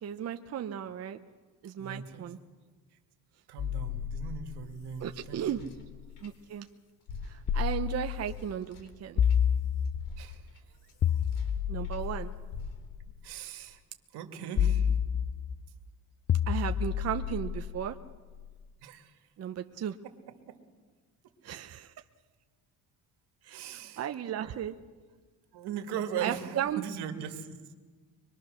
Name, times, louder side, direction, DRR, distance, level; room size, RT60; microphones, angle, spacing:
voice 1, 0.0-1.2 1.6-2.4 5.0-5.6 6.2-6.7 7.3-9.2 11.7-12.3 16.5-18.0 19.4-20.0 21.4-21.9 23.4-23.6 24.0-24.7 26.2-26.8, right 9 dB, 40° right, 6 dB, 0.8 m, -35 dB
voice 2, 1.8-2.3 3.5-5.7 10.2-10.4 13.2-13.8 14.1-14.9 18.8-19.1 20.5-20.6 23.5-24.1 24.3-24.7 25.5-27.5, right 8 dB, 80° right, 5 dB, 2.3 m, -39 dB
sound 1, 3.6-6.3 7.5-8.5 9.2-10.3 11.0-13.3 14.6-15.7 16.3-18.4, left 8 dB, 35° left, 0.6 m, -30 dB
sound 2, 4.4-6.7 7.0-12.1 12.5-13.2, left 4 dB, 75° left, 3.3 m, -48 dB
24.0 x 22.0 x 6.5 m, 1.4 s
cardioid pair, 135°, 39 cm